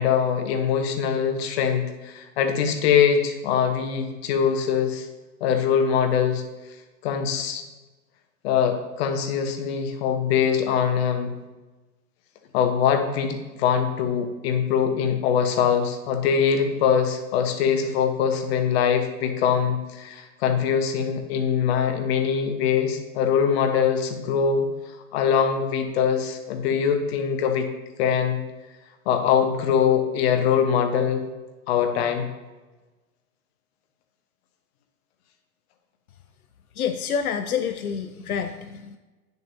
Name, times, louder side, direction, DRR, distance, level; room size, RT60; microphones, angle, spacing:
voice 1, 0.0-5.1 5.4-6.4 7.0-7.6 8.4-11.3 12.5-24.7 25.1-27.7 28.0-28.4 29.1-31.2 31.7-32.3, left 7 dB, 45° left, 6 dB, 1.2 m, -23 dB
voice 2, 36.8-39.0, left 7 dB, 80° left, 8 dB, 0.6 m, -28 dB
10.5 x 6.7 x 2.8 m, 1.2 s
figure-of-eight pair, 105°, 43 cm